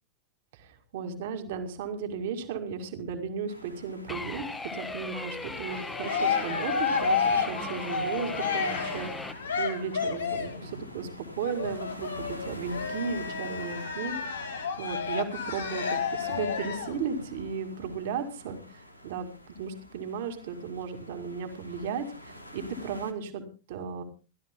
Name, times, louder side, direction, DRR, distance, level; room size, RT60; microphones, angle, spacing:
voice 1, 0.5-4.5 4.7-14.5 14.8-18.6 19.0-24.0, right 6 dB, 55° right, 6 dB, 2.2 m, -35 dB
sound 1, 3.5-23.1, equal, 85° left, 1.3 m, -46 dB
sound 2, 4.1-9.3, left 3 dB, 10° left, 1.4 m, -38 dB
Cheering, 5.6-10.6 11.4-17.0, left 5 dB, 70° left, 1.8 m, -31 dB
29.5 x 12.5 x 2.2 m, 0.33 s
figure-of-eight pair, 90°, 0 cm